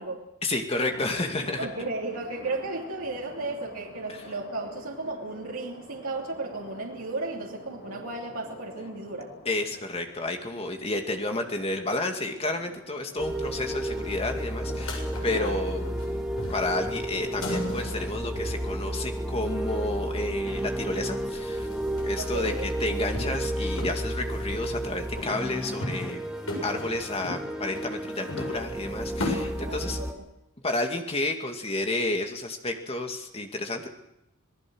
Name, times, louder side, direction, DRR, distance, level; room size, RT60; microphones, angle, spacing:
voice 1, 0.4-1.7 9.5-15.9 16.5-21.7 22.0-26.3 26.6-30.0 30.6-33.9, left 2 dB, 25° left, 4 dB, 2.3 m, -31 dB
sound 1, 0.9-19.0, left 1 dB, 45° left, 2.7 m, -48 dB
voice 2, 1.6-9.3 15.3-15.7 22.2-22.7 29.6-30.2, right 3 dB, 75° right, -2 dB, 3.0 m, -34 dB
sound 2, 13.2-30.1, right 1 dB, 5° right, 2.0 m, -32 dB
sound 3, 14.7-16.1 16.3-19.0 21.2-21.3 21.5-23.5 23.8-24.9 25.2-26.2 26.5-29.3, left 2 dB, 75° left, 7.7 m, -37 dB
26.5 x 19.0 x 6.3 m, 0.83 s
head